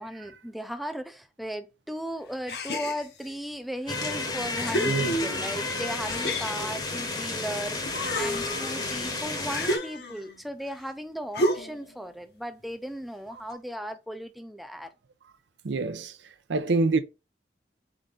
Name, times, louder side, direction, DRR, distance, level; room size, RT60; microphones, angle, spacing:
voice 1, 0.0-14.9, equal, ahead, 0.4 m, -36 dB
sound 1, 2.5-3.3 4.0-4.1 4.5-5.6 6.1-7.5 7.8-10.4 11.3-11.9, equal, 65° left, 0.8 m, -31 dB
sound 2, 3.9-9.8, left 3 dB, 25° left, 0.8 m, -32 dB
voice 2, 4.9-5.2 8.8-9.0 15.6-16.2 16.5-17.0, right 3 dB, 90° right, 0.6 m, -26 dB
3.9 x 3.7 x 3.7 m
head